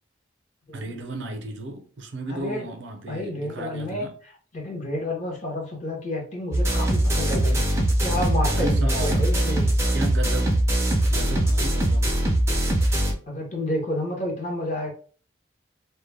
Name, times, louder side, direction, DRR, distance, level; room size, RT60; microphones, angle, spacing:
voice 1, 0.7-4.1 8.4-9.4 9.9-10.7 11.1-12.2, right 2 dB, 70° right, 0.5 m, -34 dB
voice 2, 2.3-2.7 3.1-4.1 4.5-9.7 13.3-14.9, left 1 dB, 40° left, 0.7 m, -30 dB
sound 1, 6.5-13.1, right 1 dB, 15° right, 0.4 m, -22 dB
2.1 x 2.0 x 3.2 m
head